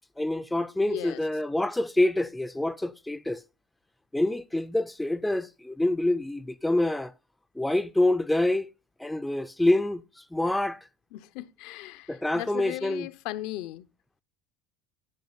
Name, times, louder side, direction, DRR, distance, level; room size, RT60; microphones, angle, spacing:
voice 1, 0.2-3.4 4.1-7.1 7.6-8.7 9.0-10.8 12.1-13.1, left 1 dB, 5° left, 0.4 m, -26 dB
voice 2, 0.8-1.2 11.1-13.9, left 16 dB, 65° left, 0.5 m, -37 dB
10.5 x 5.0 x 3.9 m
supercardioid pair, 130°, 0 cm